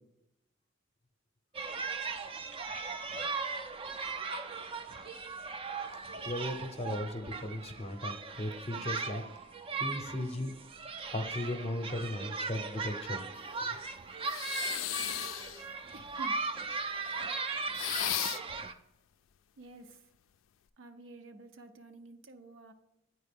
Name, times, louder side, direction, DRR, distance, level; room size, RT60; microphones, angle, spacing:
sound 1, 1.5-18.7, right 4 dB, 30° right, 0.3 m, -38 dB
voice 1, 6.2-9.2 9.8-10.5 11.1-13.2 13.6-13.8, left 1 dB, 30° left, 7 dB, 0.6 m, -36 dB
sound 2, 14.3-15.7 17.7-18.6, left 14 dB, 75° left, 0.3 m, -35 dB
voice 2, 15.6-16.4 19.6-20.1 20.8-22.7, right 2 dB, 80° right, 8 dB, 0.6 m, -50 dB
9.0 x 4.6 x 3.4 m, 0.90 s
head